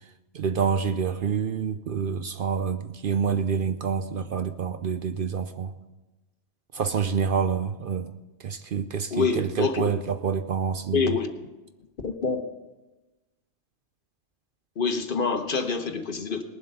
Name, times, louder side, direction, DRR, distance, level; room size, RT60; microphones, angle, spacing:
voice 1, 0.3-5.7 6.7-8.1 8.4-11.1, right 6 dB, 60° right, 0.7 m, -27 dB
voice 2, 9.1-9.8 10.9-11.3 12.0-12.5 14.8-16.4, left 5 dB, 50° left, 1.2 m, -26 dB
19.5 x 7.7 x 5.5 m
omnidirectional pair, 1.2 m